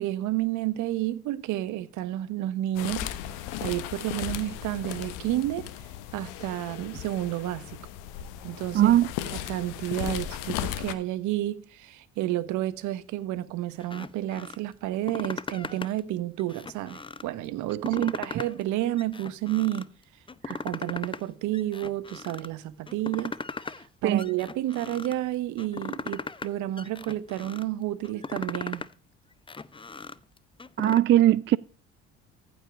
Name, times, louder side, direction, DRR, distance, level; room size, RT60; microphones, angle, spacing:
voice 1, 0.0-3.1 3.6-5.7 6.1-7.8 8.4-9.0 9.3-19.9 20.5-23.4 23.7-28.9, right 14 dB, 65° right, 1.2 m, -30 dB
sound 1, 2.7-10.9, left 11 dB, 75° left, 1.2 m, -36 dB
voice 2, 8.7-9.1 18.0-18.1 20.5-20.6 24.0-24.2 30.8-31.6, right 12 dB, 35° right, 0.4 m, -20 dB
sound 2, 13.8-14.6 14.9-16.0 16.4-17.3 17.7-18.7 19.0-19.9 20.3-21.2 21.5-22.5 22.9-23.9 24.2-25.2 25.6-26.5 26.8-27.6 28.0-28.9 29.3-31.0, left 4 dB, 15° left, 0.7 m, -38 dB
15.0 x 5.4 x 5.0 m
hypercardioid pair, 60°, 32 cm